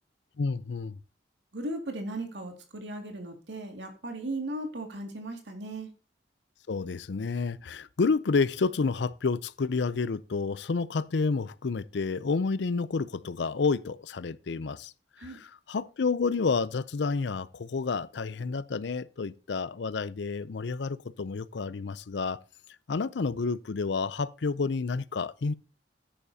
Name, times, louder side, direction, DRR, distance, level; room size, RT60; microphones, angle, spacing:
voice 1, 0.4-1.0 6.7-14.9 15.2-22.4 22.9-25.5, left 4 dB, 80° left, 0.5 m, -30 dB
voice 2, 1.5-5.9 15.2-15.4, right 1 dB, 80° right, 2.2 m, -37 dB
13.5 x 10.0 x 2.8 m
head